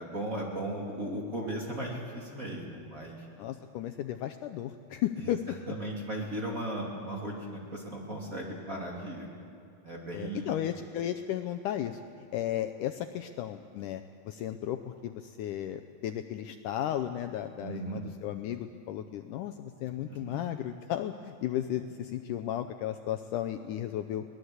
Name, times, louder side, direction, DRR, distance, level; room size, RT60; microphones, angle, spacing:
voice 1, 0.0-3.3 5.2-5.4 5.7-9.3 9.8-10.5 17.6-18.0 20.1-20.4, right 1 dB, 25° right, -1 dB, 2.7 m, -37 dB
voice 2, 3.4-5.4 10.1-12.0 12.3-24.2, left 11 dB, 80° left, 8 dB, 1.8 m, -34 dB
23.0 x 18.5 x 8.0 m, 2.5 s
omnidirectional pair, 4.4 m